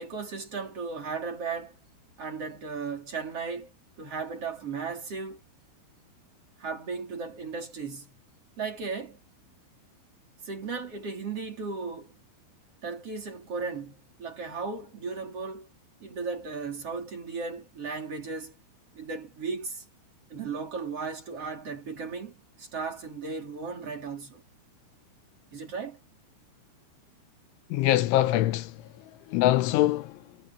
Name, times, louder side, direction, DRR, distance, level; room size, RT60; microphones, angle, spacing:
voice 1, 0.0-1.7 2.2-5.4 6.6-8.1 8.6-9.2 10.4-12.1 12.8-15.7 16.0-18.5 18.9-19.8 20.3-24.4 25.5-26.0, right 4 dB, 30° right, 4.2 m, -36 dB
voice 2, 27.7-28.8 29.3-30.2, left 14 dB, 80° left, 3.1 m, -23 dB
omnidirectional pair, 5.9 m